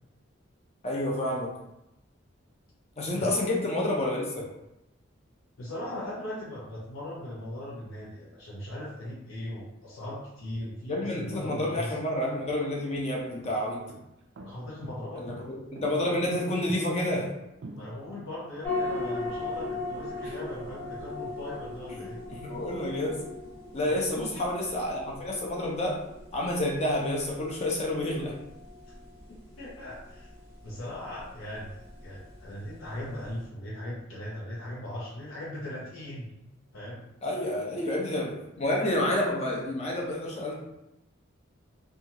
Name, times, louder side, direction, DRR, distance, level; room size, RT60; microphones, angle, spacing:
voice 1, 0.8-1.5 3.0-4.4 10.9-13.9 15.2-17.3 20.2-20.3 22.3-23.2 23.7-26.0 26.3-28.3 37.2-40.5, left 1 dB, 30° left, -2 dB, 0.5 m, -29 dB
voice 2, 5.6-12.0 14.4-15.4 17.7-22.2 23.9-24.3 29.3-30.3 30.6-36.3 36.7-37.0, left 1 dB, 75° left, -6 dB, 0.6 m, -39 dB
sound 1, 12.4-18.8, right 2 dB, 55° right, 0.3 m, -46 dB
sound 2, 18.6-33.4, left 2 dB, 10° left, 0.8 m, -39 dB
2.7 x 2.3 x 2.8 m, 0.89 s
head